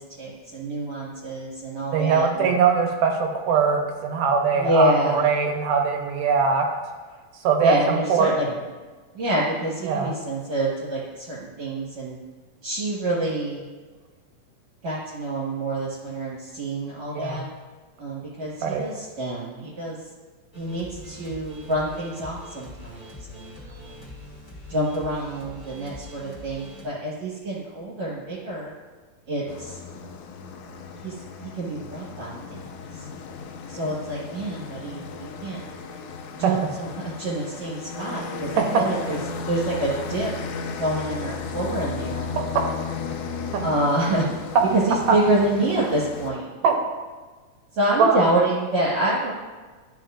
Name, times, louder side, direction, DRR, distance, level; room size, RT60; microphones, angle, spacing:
voice 1, 0.0-2.5 4.5-5.2 7.6-8.4 9.1-12.2 12.6-13.6 14.8-17.5 18.0-18.5 18.8-20.0 20.5-24.1 24.7-28.7 29.3-29.8 31.0-31.1 31.4-32.6 33.0-33.1 33.7-35.6 36.3-39.2 39.5-40.3 40.8-42.3 43.6-44.3 44.7-46.5 47.7-49.3, right 1 dB, 60° right, -7 dB, 2.4 m, -27 dB
voice 2, 1.9-6.7 7.4-8.5 9.8-10.1 17.1-17.4 18.6-18.9 36.4-36.5 38.6-38.8 42.3-42.4 43.5-43.6 46.6-46.8 48.0-48.2, right 6 dB, 80° right, 2 dB, 2.5 m, -21 dB
sound 1, 20.5-26.8, left 1 dB, 20° left, 1.0 m, -43 dB
sound 2, 29.5-46.3, left 5 dB, 80° left, 1.9 m, -35 dB
11.5 x 5.3 x 2.5 m, 1.4 s
omnidirectional pair, 3.7 m